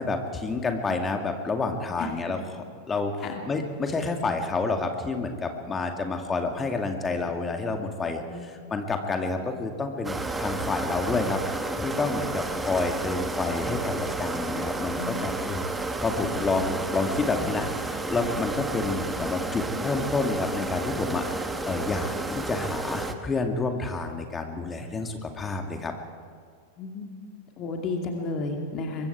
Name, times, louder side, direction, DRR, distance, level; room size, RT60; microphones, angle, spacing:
voice 1, 0.0-3.1 3.5-15.6 16.0-25.9, left 3 dB, 15° left, 4 dB, 2.3 m, -29 dB
sound 1, 10.0-23.1, right 2 dB, 10° right, 1.3 m, -31 dB
voice 2, 26.8-27.1 27.6-29.1, left 3 dB, 35° left, 2 dB, 2.5 m, -32 dB
24.0 x 22.5 x 4.8 m, 2.1 s
figure-of-eight pair, 90°, 0 cm